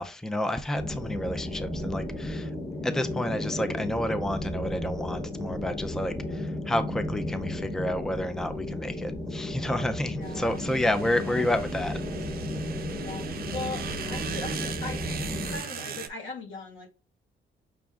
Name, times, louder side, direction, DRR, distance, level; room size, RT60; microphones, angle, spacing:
voice 1, 0.0-2.5 2.8-12.0, left 1 dB, ahead, 0.5 m, -30 dB
sound 1, 0.7-15.6, left 1 dB, 15° left, 1.1 m, -34 dB
voice 2, 10.2-10.6 11.1-11.5 13.0-16.9, left 3 dB, 85° left, 2.0 m, -40 dB
sound 2, 10.2-16.1, right 8 dB, 50° right, 0.6 m, -38 dB
6.1 x 2.2 x 3.6 m
cardioid pair, 90°, 20 cm